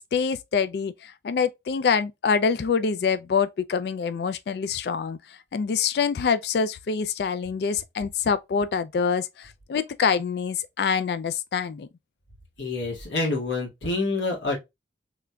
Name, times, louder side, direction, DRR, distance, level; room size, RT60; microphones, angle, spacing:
voice 1, 0.0-5.2 5.5-11.9, left 6 dB, 65° left, 0.3 m, -25 dB
voice 2, 12.6-14.6, left 3 dB, 85° left, 1.8 m, -27 dB
3.7 x 3.3 x 2.2 m
head